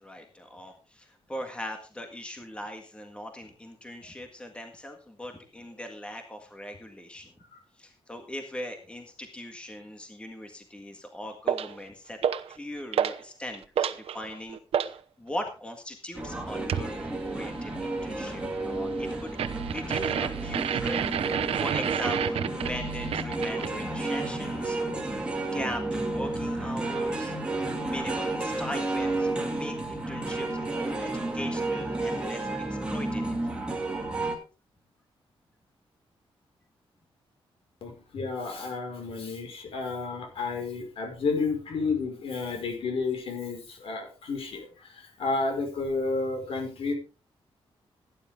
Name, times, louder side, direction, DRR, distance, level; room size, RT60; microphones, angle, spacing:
voice 1, 0.0-7.3 7.8-12.2 12.5-13.9 14.1-14.6 14.9-19.4 19.6-24.9 25.5-27.3 27.8-33.5, left 1 dB, 10° left, 4 dB, 1.7 m, -40 dB
sound 1, 11.5-11.7 12.2-12.6 12.9-13.2 13.5-15.0 16.7-16.9 19.4-23.8, right 8 dB, 80° right, 0.9 m, -29 dB
sound 2, 16.2-34.4, right 2 dB, 10° right, 2.7 m, -31 dB
voice 2, 37.8-46.9, left 4 dB, 70° left, 4 dB, 5.2 m, -31 dB
17.0 x 10.5 x 3.7 m, 0.33 s
wide cardioid pair, 175°, 10 cm